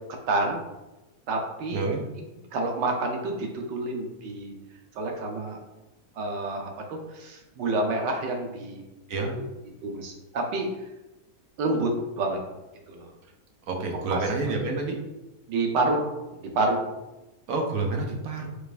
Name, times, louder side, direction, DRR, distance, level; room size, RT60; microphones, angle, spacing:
voice 1, 0.3-0.7 1.3-1.8 2.5-4.5 5.0-5.6 6.2-8.8 9.8-10.7 11.6-12.4 12.9-13.1 14.1-14.2 15.5-16.1 16.4-16.8, right 2 dB, 90° right, 2 dB, 1.5 m, -28 dB
voice 2, 1.7-2.0 9.1-9.4 13.7-15.0 17.5-18.5, right 3 dB, 65° right, 2 dB, 1.1 m, -28 dB
4.8 x 4.4 x 2.5 m, 1.0 s
omnidirectional pair, 1.8 m